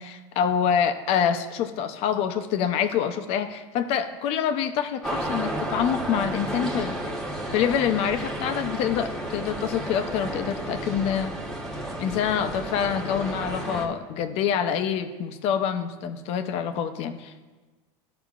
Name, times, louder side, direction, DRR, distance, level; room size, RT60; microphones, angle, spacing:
voice 1, 0.0-7.0 7.5-11.4 12.0-17.3, left 8 dB, 45° left, 9 dB, 0.7 m, -26 dB
sound 1, 5.0-13.9, right 1 dB, ahead, 1.1 m, -32 dB
15.5 x 5.7 x 2.4 m, 1.3 s
supercardioid pair, 155°, 14 cm